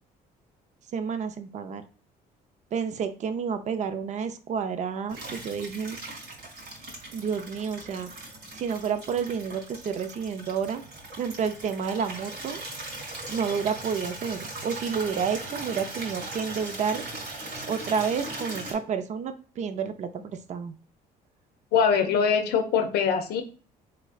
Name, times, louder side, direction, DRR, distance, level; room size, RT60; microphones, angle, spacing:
voice 1, 0.9-1.8 2.7-6.0 7.1-8.1 8.5-10.8 11.2-12.6 13.3-17.0 17.7-20.7, right 6 dB, 45° right, 9 dB, 0.5 m, -30 dB
Water tap faucet / Liquid, 5.1-18.7, right 2 dB, 80° right, 1.7 m, -39 dB
voice 2, 21.7-23.4, left 6 dB, 70° left, 6 dB, 0.6 m, -23 dB
3.6 x 3.2 x 2.4 m, 0.39 s
cardioid pair, 110°, 17 cm